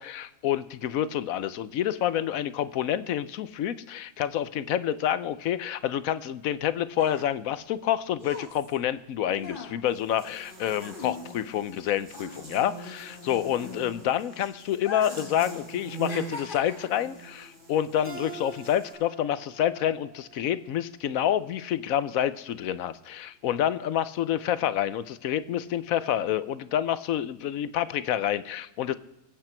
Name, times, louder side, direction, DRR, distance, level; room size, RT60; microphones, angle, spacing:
voice 1, 0.0-29.0, left 10 dB, 65° left, 15 dB, 1.0 m, -28 dB
sound 1, 6.9-11.8 12.1-14.2 14.8-15.3 15.6-17.1 17.8-18.0, left 3 dB, 35° left, 1.9 m, -41 dB
Buzz, 9.9-18.9, right 1 dB, 50° right, 3.8 m, -43 dB
Keyboard (musical), 18.0-21.3, right 3 dB, 10° right, 2.2 m, -46 dB
22.5 x 8.8 x 4.5 m, 0.89 s
omnidirectional pair, 1.7 m